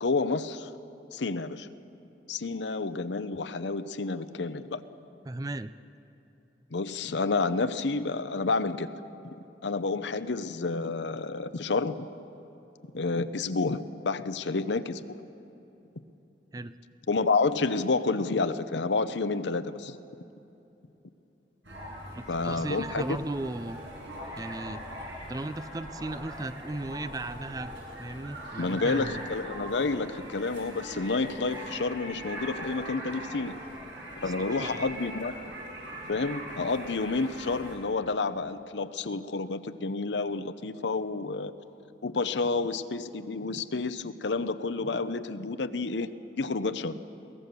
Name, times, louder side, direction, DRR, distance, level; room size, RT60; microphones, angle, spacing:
voice 1, 0.0-0.7 1.1-1.7 2.3-4.8 6.7-9.0 9.6-12.1 12.9-15.2 17.1-20.0 22.3-23.2 28.6-33.5 34.2-35.3 36.0-41.5 42.0-47.0, left 3 dB, 80° left, 12 dB, 0.8 m, -30 dB
voice 2, 5.3-5.7 16.5-16.7 22.1-23.8 24.4-24.8 25.3-27.7 28.0-29.2 34.5-34.8, right 2 dB, 20° right, 13 dB, 0.4 m, -36 dB
sound 1, 21.6-37.8, equal, 80° right, 6.3 m, -41 dB
22.5 x 17.5 x 6.8 m, 2.9 s
head